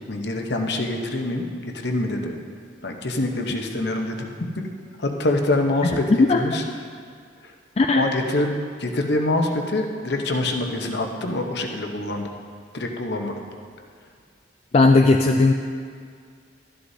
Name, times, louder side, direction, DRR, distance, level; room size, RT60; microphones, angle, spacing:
voice 1, 0.1-1.4 1.7-2.4 2.8-4.7 5.0-6.6 7.4-7.5 7.9-8.5 8.8-12.3 12.7-13.4, left 2 dB, 60° left, 3 dB, 0.9 m, -25 dB
voice 2, 5.8-6.4 7.8-8.0 14.7-15.5, left 3 dB, 30° left, 3 dB, 0.3 m, -17 dB
12.5 x 11.5 x 2.8 m, 2.1 s
head